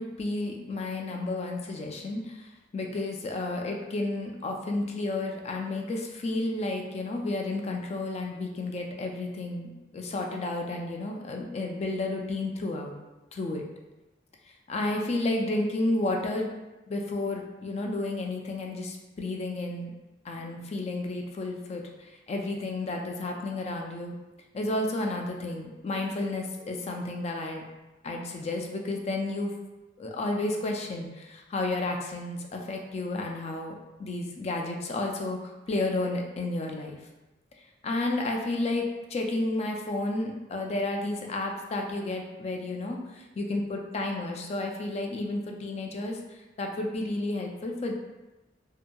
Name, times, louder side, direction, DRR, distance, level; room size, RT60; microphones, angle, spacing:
voice 1, 0.0-13.0 13.3-13.7 14.7-16.5 16.9-19.9 20.2-24.1 24.5-27.6 28.0-29.5 30.0-37.0 37.8-47.9, left 2 dB, 35° left, 2 dB, 0.3 m, -32 dB
2.7 x 2.6 x 2.2 m, 1.1 s
head